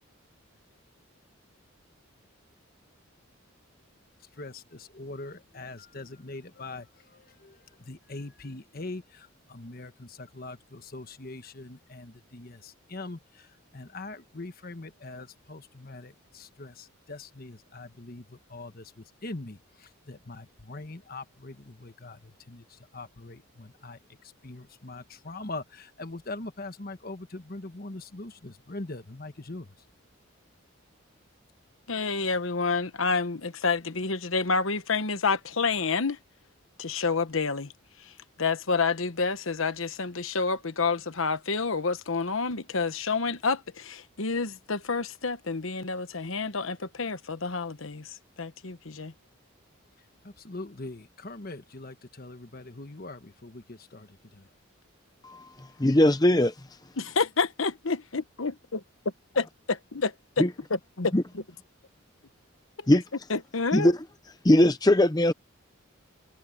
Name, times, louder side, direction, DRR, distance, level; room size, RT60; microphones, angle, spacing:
voice 1, 4.2-29.7 50.2-54.5, left 2 dB, 45° left, 1.3 m, -42 dB
voice 2, 31.9-36.2 36.8-37.7 38.4-49.1 57.0-58.8 59.3-60.4 61.0-61.1 62.8-62.9 63.3-63.9, left 4 dB, 70° left, 1.2 m, -29 dB
voice 3, 55.2-56.5 60.4-60.5 61.1-61.2 62.9-63.0 63.7-64.0 64.4-65.3, left 1 dB, 20° left, 0.7 m, -20 dB
head